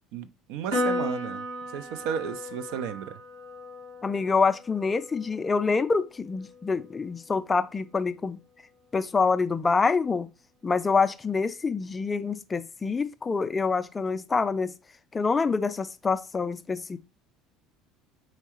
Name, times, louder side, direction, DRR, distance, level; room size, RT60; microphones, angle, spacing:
voice 1, 0.1-1.4 1.7-3.2, right 8 dB, 60° right, 0.4 m, -33 dB
Piano, 0.7-7.4, left 1 dB, 75° right, 1.6 m, -35 dB
voice 2, 4.0-8.4 8.9-10.3 10.6-14.7 15.1-17.0, left 4 dB, 25° left, 0.3 m, -26 dB
4.4 x 3.8 x 2.9 m
figure-of-eight pair, 65°, 0 cm